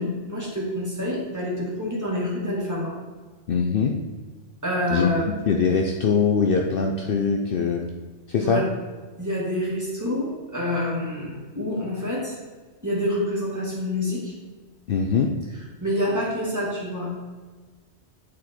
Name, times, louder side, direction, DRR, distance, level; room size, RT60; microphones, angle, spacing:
voice 1, 0.0-2.9 4.6-5.3 8.4-8.6 9.2-12.4 12.8-14.3 15.8-17.1, left 1 dB, 15° right, -5 dB, 2.0 m, -27 dB
voice 2, 3.5-3.9 4.9-7.8 8.3-8.6 14.9-15.3, left 5 dB, 60° left, 2 dB, 0.7 m, -22 dB
9.2 x 4.2 x 4.4 m, 1.4 s
omnidirectional pair, 1.2 m